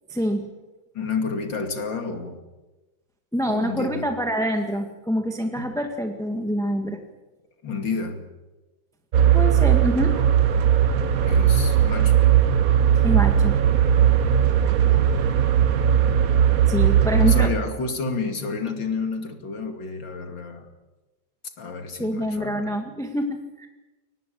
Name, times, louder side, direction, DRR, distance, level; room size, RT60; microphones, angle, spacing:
voice 1, 0.1-0.4 3.3-7.0 9.3-10.2 13.0-13.5 16.7-17.5 22.0-23.7, equal, ahead, 4 dB, 1.8 m, -26 dB
voice 2, 0.9-2.4 3.5-4.0 5.6-5.7 7.6-8.2 11.2-12.3 14.8-15.3 17.2-20.7 21.6-22.7, left 4 dB, 65° left, 6 dB, 3.2 m, -30 dB
sound 1, 9.1-17.5, right 9 dB, 55° right, 1.2 m, -18 dB
23.0 x 19.0 x 8.6 m, 1.1 s
omnidirectional pair, 2.2 m